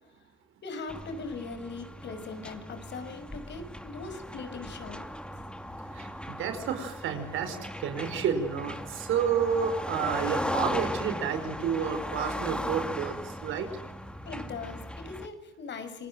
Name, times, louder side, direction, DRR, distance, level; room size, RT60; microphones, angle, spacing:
voice 1, 0.6-5.0 14.3-16.1, left 4 dB, 65° left, 9 dB, 6.1 m, -40 dB
sound 1, 0.9-15.3, equal, 5° left, 2.6 m, -37 dB
voice 2, 5.9-13.7, right 7 dB, 85° right, 7 dB, 5.2 m, -30 dB
28.0 x 21.0 x 7.8 m, 0.88 s
cardioid pair, 90°, 20 cm